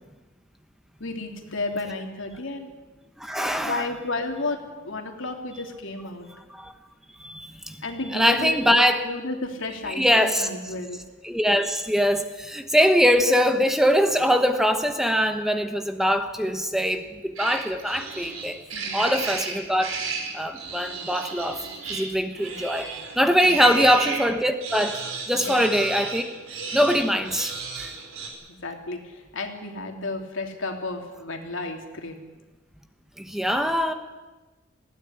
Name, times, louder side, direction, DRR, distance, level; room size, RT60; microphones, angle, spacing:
voice 1, 1.0-2.7 3.6-6.3 7.8-11.0 18.7-19.1 23.4-23.6 25.3-25.6 28.6-32.2, left 2 dB, 70° left, 4 dB, 3.0 m, -32 dB
voice 2, 3.2-3.9 6.5-6.7 7.2-7.8 8.1-9.0 10.0-10.5 11.2-18.6 18.9-20.0 20.3-25.0 25.3-26.2 26.7-27.5 27.8-27.9 33.2-33.9, equal, ahead, 7 dB, 1.1 m, -22 dB
sound 1, 17.4-24.3 24.6-28.3, right 4 dB, 85° right, 4.6 m, -34 dB
20.0 x 16.0 x 9.9 m, 1.2 s
head